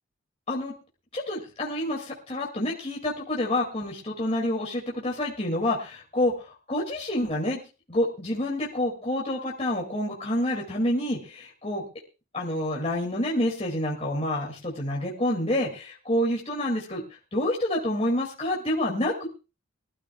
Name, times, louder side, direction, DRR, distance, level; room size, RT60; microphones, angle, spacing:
voice 1, 1.1-7.6 7.9-11.9 12.3-17.0 17.3-19.3, left 1 dB, 30° left, -2 dB, 2.4 m, -28 dB
22.5 x 12.5 x 2.3 m, 0.30 s
head